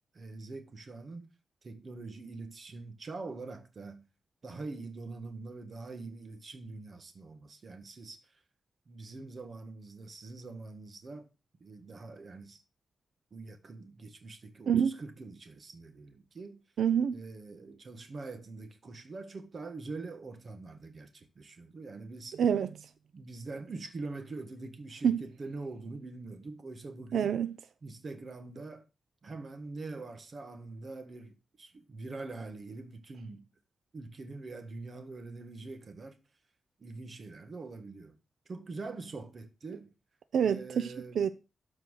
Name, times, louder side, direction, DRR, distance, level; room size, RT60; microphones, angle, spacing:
voice 1, 0.1-1.3 1.6-4.1 4.4-8.4 8.9-11.3 11.6-12.6 13.3-16.6 17.1-22.4 23.1-27.3 27.8-28.8 29.2-33.4 33.9-36.2 36.8-38.2 38.4-39.9 40.4-41.2, right 3 dB, 40° right, 1.5 m, -44 dB
voice 2, 16.8-17.2 22.4-22.7 25.0-25.2 27.1-27.5 40.3-40.9 41.1-41.3, right 8 dB, 85° right, 0.6 m, -26 dB
13.0 x 4.4 x 6.4 m
wide cardioid pair, 170°, 0 cm